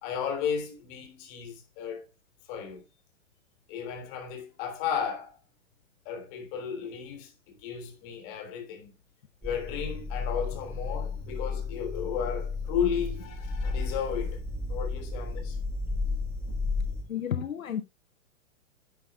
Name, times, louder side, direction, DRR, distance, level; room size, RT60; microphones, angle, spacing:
voice 1, 0.0-2.1 2.5-2.8 3.7-5.3 6.0-8.9 9.4-14.4 14.7-15.6, left 7 dB, 40° left, 3.4 m, -34 dB
sound 1, 9.4-17.0, left 4 dB, 5° right, 1.6 m, -33 dB
voice 2, 17.1-17.8, left 9 dB, 80° left, 1.0 m, -31 dB
10.5 x 9.3 x 2.3 m
hypercardioid pair, 115°, 40 cm